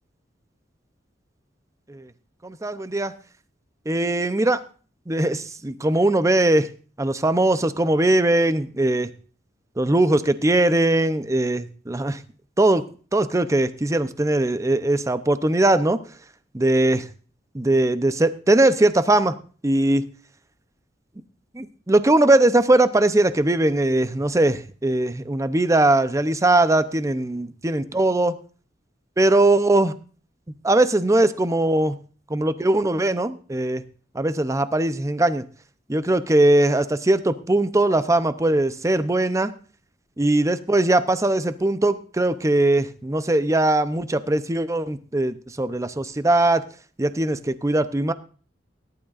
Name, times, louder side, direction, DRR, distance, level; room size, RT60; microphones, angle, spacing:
voice 1, 2.4-3.1 3.9-4.6 5.1-6.7 7.0-9.1 9.8-12.2 12.6-12.8 13.1-16.0 16.5-17.1 17.5-19.4 19.6-20.1 21.5-28.3 29.2-29.9 30.6-31.9 32.3-33.8 34.1-35.5 35.9-39.5 40.2-46.6 47.0-48.1, right 2 dB, 15° right, 12 dB, 0.6 m, -20 dB
18.5 x 11.5 x 2.5 m, 0.38 s
head